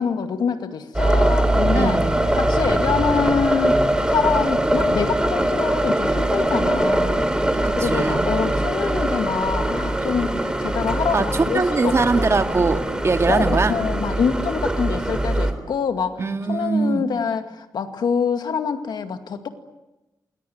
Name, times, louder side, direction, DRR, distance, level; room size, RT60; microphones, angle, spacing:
voice 1, 0.0-2.0 2.3-3.8 4.1-12.3 13.3-19.5, left 6 dB, 90° left, 7 dB, 2.2 m, -25 dB
sound 1, 0.9-15.5, right 1 dB, 10° right, 3.5 m, -22 dB
voice 2, 1.7-2.2 7.6-8.3 11.1-13.7 16.2-17.1, right 4 dB, 40° right, 6 dB, 2.1 m, -22 dB
28.0 x 21.0 x 9.4 m, 1.0 s
cardioid pair, 90°, 7 cm